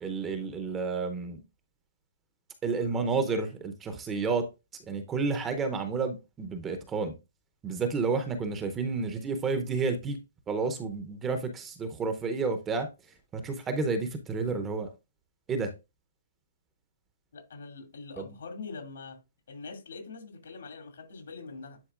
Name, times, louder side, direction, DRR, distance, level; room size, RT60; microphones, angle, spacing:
voice 1, 0.0-1.4 2.6-4.5 4.9-7.2 7.6-10.2 10.5-12.9 13.3-14.9 15.5-15.7 18.2-18.3, right 4 dB, 10° right, 0.7 m, -30 dB
voice 2, 17.3-19.2 19.5-21.8, left 4 dB, 75° left, 2.5 m, -43 dB
10.0 x 4.0 x 2.5 m
hypercardioid pair, 170°, 0 cm